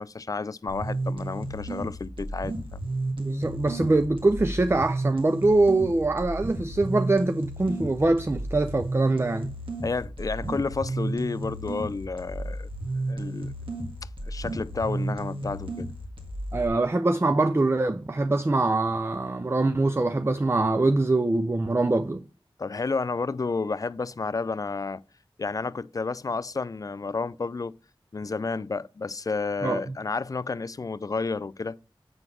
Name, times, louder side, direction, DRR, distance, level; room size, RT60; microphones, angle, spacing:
voice 1, 0.0-2.8 9.8-12.7 13.1-13.5 14.2-15.9 22.6-25.0 25.4-27.8 28.1-31.8, left 4 dB, 40° left, 0.3 m, -31 dB
sound 1, 0.7-16.7, right 2 dB, 65° right, 1.8 m, -33 dB
voice 2, 3.2-9.5 16.5-22.2 29.6-30.0, right 2 dB, 25° right, 0.4 m, -23 dB
7.8 x 3.9 x 6.1 m
cardioid pair, 40°, 9 cm